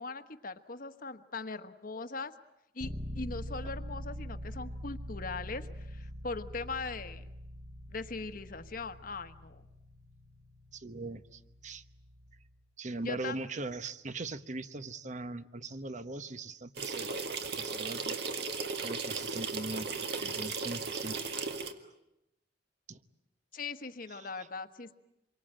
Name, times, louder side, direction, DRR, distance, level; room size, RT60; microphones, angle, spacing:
voice 1, 0.0-2.3 2.7-7.3 7.9-9.6 13.0-13.4 23.5-24.9, left 3 dB, 50° left, 10 dB, 1.3 m, -40 dB
sound 1, 2.8-12.5, equal, 20° right, 1.4 m, -44 dB
voice 2, 10.7-11.8 12.8-17.1 17.5-18.2 18.7-21.2 22.9-23.0 24.1-24.5, right 2 dB, 45° right, 12 dB, 1.1 m, -40 dB
sound 2, 16.8-21.7, right 4 dB, 65° right, 1.9 m, -36 dB
27.0 x 23.5 x 9.0 m, 0.88 s
head